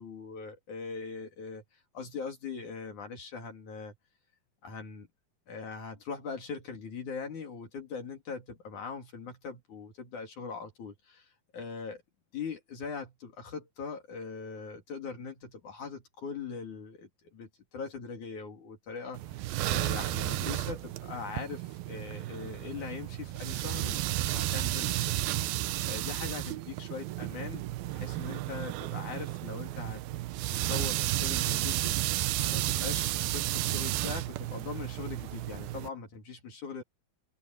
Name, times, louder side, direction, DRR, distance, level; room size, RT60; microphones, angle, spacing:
voice 1, 0.0-3.9 4.6-5.1 5.5-12.0 12.3-24.0 24.3-25.1 25.4-30.0 30.5-36.8, left 5 dB, 55° left, 4.1 m, -41 dB
sound 1, 19.2-35.9, right 15 dB, 80° right, 2.6 m, -32 dB
omnidirectional pair, 4.3 m